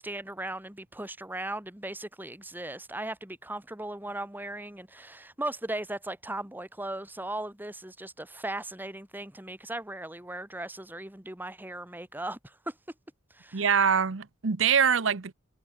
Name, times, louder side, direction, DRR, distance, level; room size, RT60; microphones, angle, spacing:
voice 1, 0.0-12.8 13.3-13.7, right 1 dB, 10° right, 2.1 m, -37 dB
voice 2, 13.5-15.3, right 7 dB, 65° right, 0.8 m, -24 dB
head